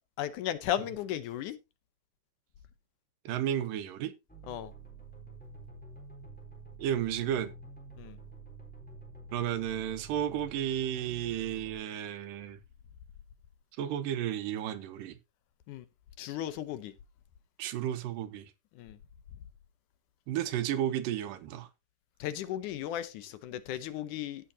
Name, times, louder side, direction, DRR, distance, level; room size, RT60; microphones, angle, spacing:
voice 1, 0.2-1.6 4.5-4.7 8.0-8.2 15.7-15.8 16.2-16.9 18.8-19.0 22.2-24.5, left 11 dB, 75° left, 2.3 m, -35 dB
voice 2, 3.3-4.1 6.8-7.5 9.3-12.6 13.8-15.2 17.6-18.5 20.3-21.7, right 10 dB, 85° right, 2.6 m, -33 dB
sound 1, 4.3-11.8, right 3 dB, 5° left, 3.5 m, -48 dB
16.0 x 6.3 x 2.7 m
omnidirectional pair, 3.9 m